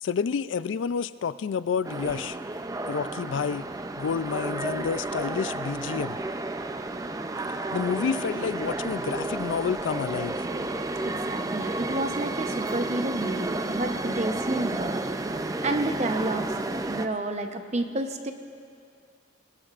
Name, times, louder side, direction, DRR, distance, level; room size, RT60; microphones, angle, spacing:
voice 1, 0.0-2.4 2.9-3.7 4.0-6.2 7.7-10.4, left 6 dB, 80° left, 15 dB, 0.4 m, -29 dB
sound 1, 1.8-17.1, right 2 dB, 20° right, 0.4 m, -31 dB
voice 2, 11.0-15.1 15.6-16.5 16.9-18.3, right 2 dB, 35° right, 6 dB, 0.8 m, -30 dB
21.5 x 19.0 x 2.5 m, 2.4 s
head